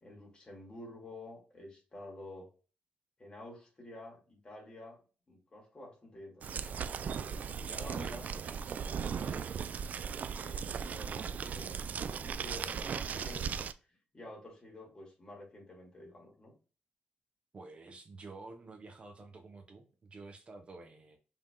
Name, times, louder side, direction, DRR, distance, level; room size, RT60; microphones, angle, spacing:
voice 1, 0.0-2.5 3.2-5.0 5.3-8.3 8.7-9.4 10.4-16.5, left 1 dB, 25° left, -2 dB, 2.2 m, -50 dB
sound 1, 6.4-13.7, right 7 dB, 50° right, 0.3 m, -37 dB
voice 2, 7.6-8.1 17.5-21.2, right 3 dB, 35° right, 5 dB, 0.8 m, -50 dB
5.6 x 3.4 x 2.3 m, 0.35 s
cardioid pair, 125°, 3 cm